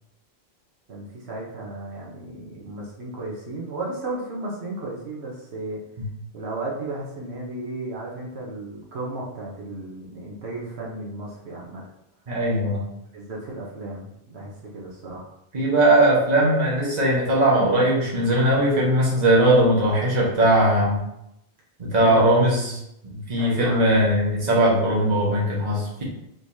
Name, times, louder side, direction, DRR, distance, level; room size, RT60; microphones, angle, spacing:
voice 1, 0.9-5.8 6.3-11.8 13.1-15.3 22.0-22.4 23.4-23.8, right 2 dB, 85° right, -3 dB, 1.2 m, -34 dB
voice 2, 12.3-12.8 15.5-21.0 21.8-22.6 23.1-26.0, right 1 dB, 40° right, -5 dB, 1.3 m, -19 dB
4.7 x 3.9 x 2.7 m, 0.81 s
omnidirectional pair, 1.1 m